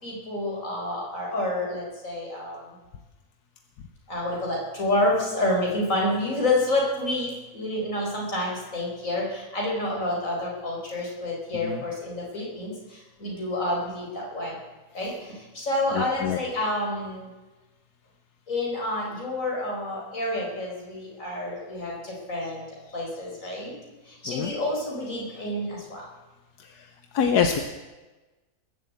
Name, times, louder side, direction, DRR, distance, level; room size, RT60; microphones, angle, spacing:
voice 1, 0.0-2.6 4.1-12.7 13.2-14.5 14.9-15.1 15.5-17.2 18.5-21.9 22.3-22.6 22.9-23.7 24.2-26.0, left 1 dB, 55° left, -3 dB, 5.0 m, -28 dB
voice 2, 15.9-16.4 24.3-24.5 27.1-27.6, left 7 dB, 85° left, 7 dB, 1.4 m, -24 dB
20.5 x 7.8 x 8.4 m, 1.2 s
omnidirectional pair, 1.7 m